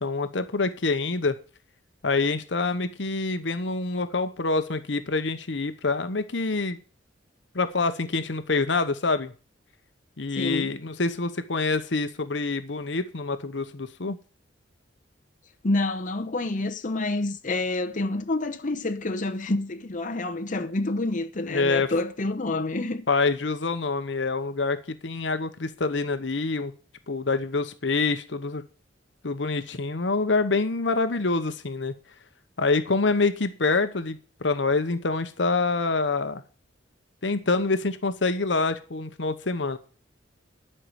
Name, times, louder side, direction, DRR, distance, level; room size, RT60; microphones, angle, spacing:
voice 1, 0.0-1.3 2.0-6.8 7.5-9.3 10.2-14.2 21.5-21.9 23.1-26.7 27.1-28.6 29.2-31.9 32.6-36.4 37.2-39.8, left 3 dB, 70° left, 1.0 m, -26 dB
voice 2, 10.3-10.8 15.6-23.0, left 2 dB, 45° left, 0.9 m, -28 dB
11.5 x 5.6 x 7.9 m
head